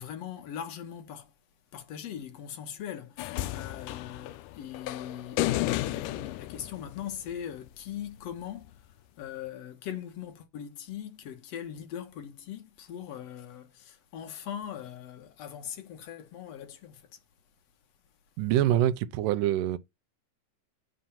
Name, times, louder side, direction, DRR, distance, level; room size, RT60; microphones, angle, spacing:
voice 1, 0.0-1.3 1.7-17.2, left 9 dB, 60° left, 1.9 m, -41 dB
sound 1, 3.2-7.5 8.7-8.8, left 16 dB, 80° left, 2.0 m, -33 dB
voice 2, 18.4-19.8, right 12 dB, 80° right, 2.2 m, -25 dB
8.8 x 3.2 x 5.7 m
omnidirectional pair, 3.8 m